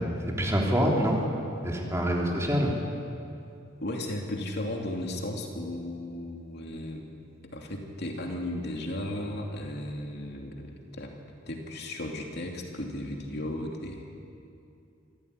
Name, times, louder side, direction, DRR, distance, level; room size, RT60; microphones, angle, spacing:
voice 1, 0.3-1.2 1.6-2.7, equal, 15° right, -1 dB, 3.5 m, -25 dB
voice 2, 3.8-7.1 7.4-11.1 11.5-14.0, left 1 dB, 55° left, 1 dB, 2.8 m, -35 dB
25.5 x 14.5 x 9.9 m, 2.6 s
head